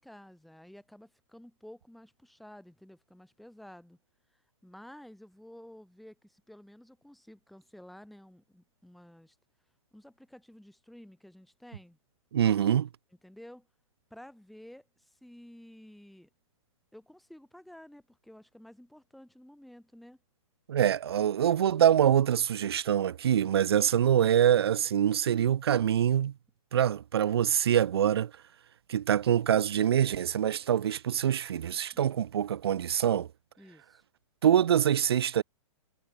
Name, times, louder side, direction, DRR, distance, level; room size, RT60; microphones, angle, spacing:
voice 1, 0.0-4.0 4.3-9.4 9.9-12.0 13.2-13.7 14.1-16.3 16.9-20.2 31.9-32.2 33.6-34.0, left 1 dB, ahead, 4.3 m, -52 dB
voice 2, 12.3-12.9 20.7-26.3 26.7-28.3 28.9-33.3 34.4-35.4, right 10 dB, 45° right, 0.9 m, -25 dB
hypercardioid pair, 180°, 18 cm